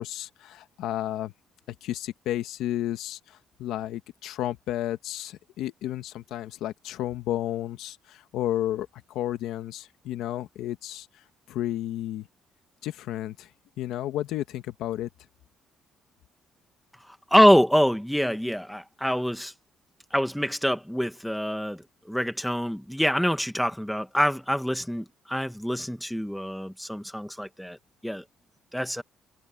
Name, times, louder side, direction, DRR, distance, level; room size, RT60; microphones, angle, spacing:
voice 1, 0.0-1.3 1.7-11.1 11.5-12.3 12.8-13.5 13.8-15.1, left 13 dB, 85° left, 1.6 m, -32 dB
voice 2, 17.1-19.5 20.1-27.8 28.0-28.2 28.7-29.0, equal, ahead, 1.3 m, -25 dB
cardioid pair, 175°, 0 cm